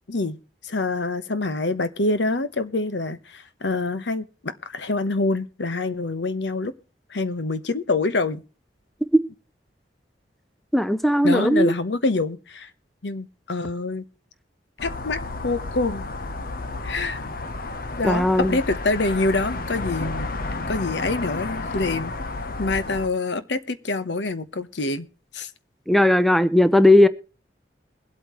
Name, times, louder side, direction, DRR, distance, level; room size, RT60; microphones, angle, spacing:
voice 1, 0.6-6.7 7.1-8.4 11.2-12.7 13.0-14.1 14.8-16.1 16.8-17.2 18.0-20.3 20.7-22.1 22.6-25.1 25.3-25.5, left 3 dB, 80° left, 1.0 m, -26 dB
voice 2, 10.7-11.7 18.0-18.6 25.9-27.1, left 1 dB, ahead, 0.6 m, -17 dB
sound 1, 14.8-23.1, left 3 dB, 55° left, 0.9 m, -31 dB
22.0 x 8.3 x 3.0 m
head